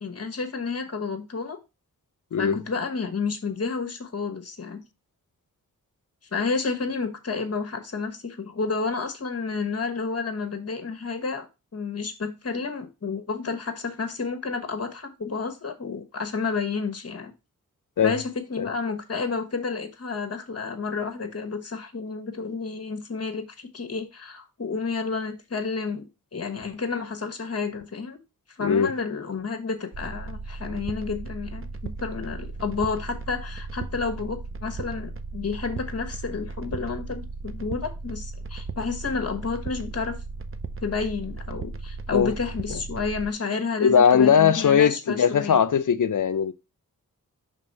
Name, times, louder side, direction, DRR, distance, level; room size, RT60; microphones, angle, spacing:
voice 1, 0.0-1.6 2.4-4.8 6.3-11.5 11.7-17.3 18.0-28.2 28.5-40.2 40.8-45.6, left 4 dB, 45° left, 1.2 m, -30 dB
voice 2, 28.6-28.9 42.1-42.3 43.8-46.5, left 7 dB, 60° left, 0.6 m, -19 dB
sound 1, 29.9-43.3, right 3 dB, 35° right, 0.7 m, -36 dB
5.3 x 3.5 x 5.3 m
cardioid pair, 50°, 35 cm